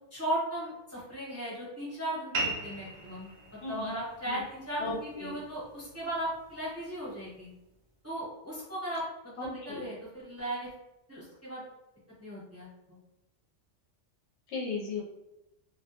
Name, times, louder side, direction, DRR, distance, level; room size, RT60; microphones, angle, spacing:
voice 1, 0.1-7.5 8.0-10.7 11.1-11.6 12.2-13.0, right 1 dB, 15° right, -8 dB, 0.6 m, -37 dB
sound 1, 2.3-7.4, right 2 dB, 65° right, 0.8 m, -40 dB
voice 2, 3.6-3.9 4.3-4.4 4.8-5.4 9.4-9.9 14.5-15.0, left 3 dB, 70° left, -2 dB, 0.9 m, -36 dB
2.2 x 2.1 x 2.8 m, 0.93 s
omnidirectional pair, 1.2 m